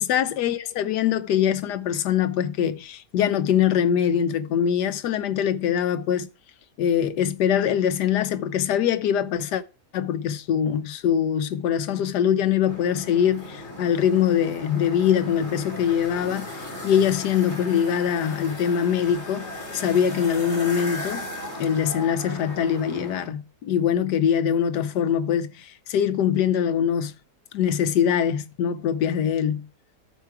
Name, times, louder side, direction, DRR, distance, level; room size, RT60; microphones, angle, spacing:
voice 1, 0.0-6.3 6.8-9.6 9.9-19.5 19.7-21.2 21.6-27.1 27.5-29.6, left 9 dB, 85° left, 1.3 m, -23 dB
sound 1, 12.7-23.3, left 1 dB, 40° left, 3.3 m, -36 dB
13.5 x 4.7 x 4.7 m
omnidirectional pair, 1.7 m